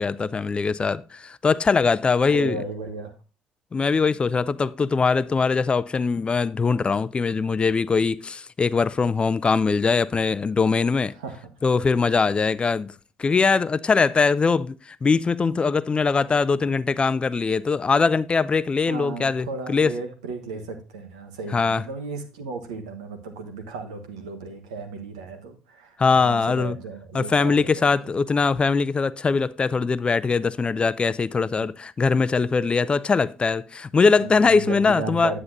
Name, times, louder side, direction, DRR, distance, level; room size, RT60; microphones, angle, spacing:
voice 1, 0.0-2.6 3.7-11.1 11.6-12.9 13.2-19.9 21.5-21.8 26.0-26.8 27.1-35.3, left 4 dB, 30° left, 0.5 m, -22 dB
voice 2, 2.2-3.1 11.1-11.4 18.9-27.9 31.5-31.7 34.2-35.4, right 4 dB, 80° right, 1.2 m, -35 dB
9.6 x 8.7 x 2.7 m
hypercardioid pair, 50°, 4 cm